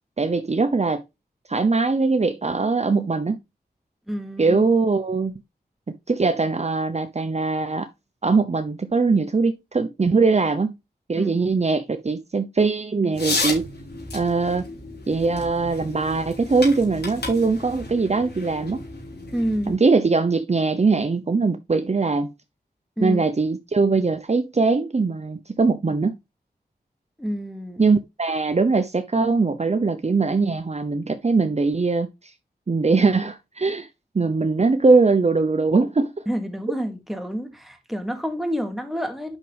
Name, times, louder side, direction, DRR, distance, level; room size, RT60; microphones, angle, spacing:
voice 1, 0.2-1.0 1.5-3.4 4.4-5.3 6.1-7.9 8.2-10.8 11.1-13.7 14.1-14.6 15.1-18.8 19.7-22.3 23.0-26.2 27.8-32.1 32.7-33.9 34.1-36.1, right 4 dB, 40° right, 0.8 m, -21 dB
voice 2, 4.1-4.7 11.2-11.3 19.3-19.8 23.0-23.3 27.2-27.8 36.3-39.4, equal, ahead, 2.3 m, -28 dB
sound 1, 13.1-19.8, left 3 dB, 75° left, 5.0 m, -32 dB
9.1 x 6.0 x 3.4 m
cardioid pair, 45°, 17 cm